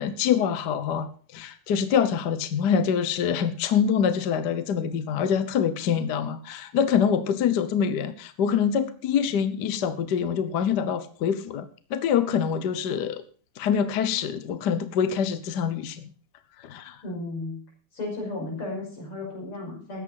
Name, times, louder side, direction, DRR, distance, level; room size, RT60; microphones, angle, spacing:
voice 1, 0.0-13.2 13.6-16.1 16.6-17.0, left 7 dB, 60° left, 12 dB, 1.3 m, -25 dB
voice 2, 17.0-17.6 17.9-20.0, left 2 dB, 85° left, -1 dB, 6.6 m, -34 dB
14.5 x 9.4 x 5.6 m, 0.43 s
omnidirectional pair, 2.4 m